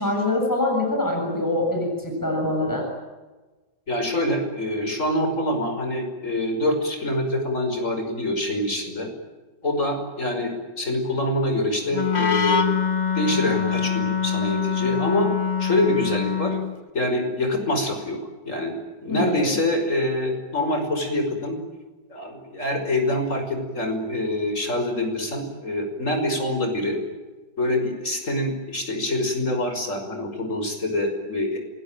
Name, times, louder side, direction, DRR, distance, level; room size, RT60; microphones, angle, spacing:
voice 1, 0.0-2.9 19.1-19.5, left 2 dB, 10° left, 0 dB, 7.9 m, -24 dB
voice 2, 3.9-9.1 9.6-12.7 13.1-15.3 15.6-16.6 16.9-18.2 18.5-18.7 19.0-21.6 22.1-27.0 27.6-31.6, left 1 dB, 45° left, 5 dB, 6.0 m, -25 dB
Wind instrument woodwind instrument, 11.9-16.8, left 7 dB, 25° left, 1.4 m, -24 dB
28.5 x 21.0 x 9.2 m, 1.2 s
omnidirectional pair, 1.9 m